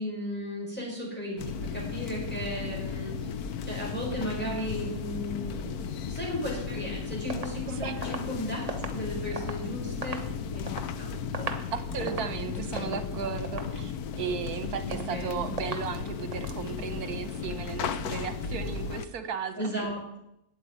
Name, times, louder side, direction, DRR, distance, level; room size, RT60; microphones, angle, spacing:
voice 1, 0.0-10.2 10.5-10.7 11.0-11.5 11.9-12.5 12.7-13.1 14.8-15.5 19.6-20.2, equal, 5° left, -4 dB, 4.4 m, -36 dB
sound 1, 1.4-19.1, left 6 dB, 80° left, 1.3 m, -35 dB
sound 2, 7.3-9.6 9.9-10.9 11.2-11.7 12.0-12.4 12.8-13.1 13.4-13.8 14.2-14.6 14.9-15.3 15.6-16.0 16.3-16.6, right 3 dB, 30° right, 1.1 m, -38 dB
voice 2, 11.7-19.9, right 7 dB, 80° right, 10 dB, 1.6 m, -35 dB
9.0 x 8.1 x 9.5 m, 0.82 s
omnidirectional pair, 1.6 m